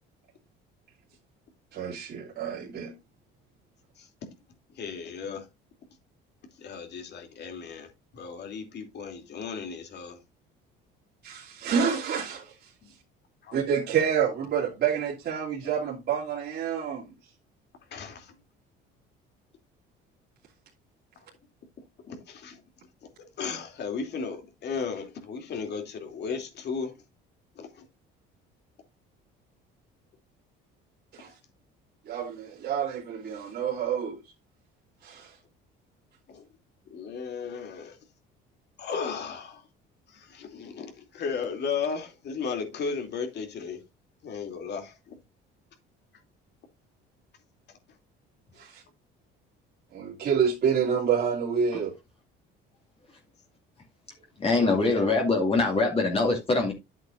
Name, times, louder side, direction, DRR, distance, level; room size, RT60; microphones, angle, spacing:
voice 1, 1.7-2.9 11.2-12.7 13.5-17.1 31.1-31.3 32.1-34.2 35.0-35.3 48.6-48.8 49.9-51.9, right 7 dB, 50° right, 2.8 m, -28 dB
voice 2, 4.8-5.5 6.6-10.2 13.4-13.6 17.9-18.3 22.1-22.6 23.4-27.0 27.6-27.8 36.3-36.4 36.9-38.0 38.8-39.6 40.1-43.8 44.2-45.2 54.4-54.8, left 5 dB, 55° left, 2.8 m, -35 dB
voice 3, 54.4-56.7, left 3 dB, 30° left, 2.4 m, -23 dB
10.5 x 8.1 x 2.5 m
cardioid pair, 105°, 21 cm